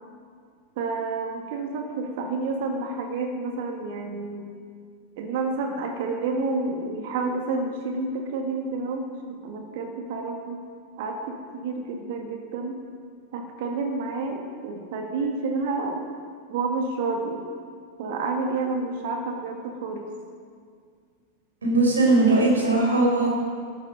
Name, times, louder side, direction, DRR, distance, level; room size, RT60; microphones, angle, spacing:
voice 1, 0.8-4.4 5.2-10.6 11.0-12.8 13.3-16.0 16.5-17.4 18.0-20.1, right 3 dB, 50° right, 3 dB, 1.7 m, -29 dB
voice 2, 21.6-23.3, right 2 dB, 70° right, -2 dB, 4.3 m, -19 dB
14.5 x 13.0 x 5.2 m, 2.1 s
figure-of-eight pair, 90°, 0 cm